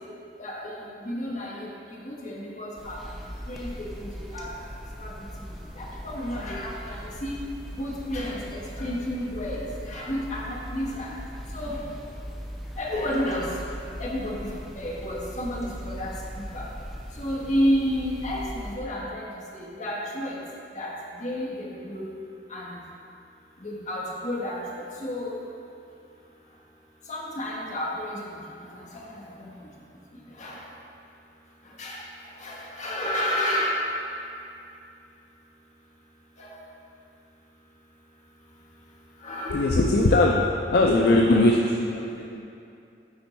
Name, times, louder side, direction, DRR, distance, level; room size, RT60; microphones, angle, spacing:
voice 1, 0.4-3.0 3.5-4.5 5.0-5.1 5.8-7.4 7.8-11.1 11.5-11.8 12.8-13.5 14.0-14.5 14.7-16.1 16.5-16.7 17.2-19.3 19.6-20.4 20.7-22.1 22.5-22.8 23.6-24.6 25.0-25.4 27.1-29.0 29.4-29.5 30.4-30.6 31.8-32.0 32.4-33.9 36.4-36.5 39.2-39.6 41.3-41.4, equal, 45° left, -4 dB, 1.2 m, -31 dB
sound 1, 2.8-18.8, equal, ahead, 0.7 m, -39 dB
voice 2, 39.5-42.4, left 2 dB, 60° left, 0 dB, 0.4 m, -21 dB
8.8 x 4.4 x 4.2 m, 2.6 s
head